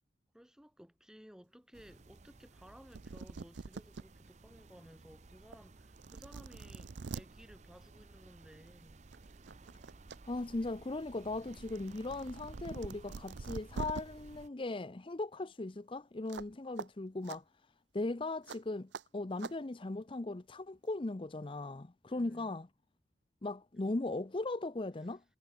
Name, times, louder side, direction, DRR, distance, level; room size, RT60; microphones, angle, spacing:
voice 1, 0.3-9.0 15.4-15.5 22.1-22.6 25.1-25.2, equal, 5° right, 1.7 m, -58 dB
sound 1, 1.7-14.5, right 2 dB, 40° right, 0.7 m, -56 dB
sound 2, 2.7-2.8 2.9-4.0 4.6-4.7 5.5-5.6 6.0-7.2 8.5-8.7 9.1-10.2 10.5-14.0 16.3-16.5 16.8-16.9 17.2-17.4 18.5-18.6 18.9-19.0 19.4-19.5, right 4 dB, 75° right, 0.6 m, -44 dB
voice 2, 10.3-17.4 17.9-22.7 23.4-25.2, left 2 dB, 30° left, 0.6 m, -38 dB
head